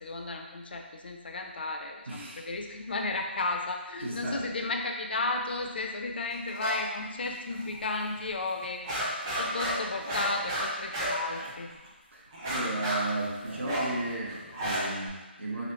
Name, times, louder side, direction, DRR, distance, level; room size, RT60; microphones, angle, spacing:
voice 1, 0.0-8.9 9.4-11.7, left 3 dB, 55° left, 3 dB, 0.4 m, -33 dB
voice 2, 2.1-2.5 4.0-4.4 12.1-15.7, right 2 dB, 80° right, -4 dB, 0.9 m, -35 dB
sound 1, 6.5-6.8 7.1-7.8 8.2-8.3 8.6-11.9 12.3-15.1, equal, 20° right, 0.5 m, -33 dB
3.1 x 2.6 x 2.9 m, 1.2 s
figure-of-eight pair, 165°, 6 cm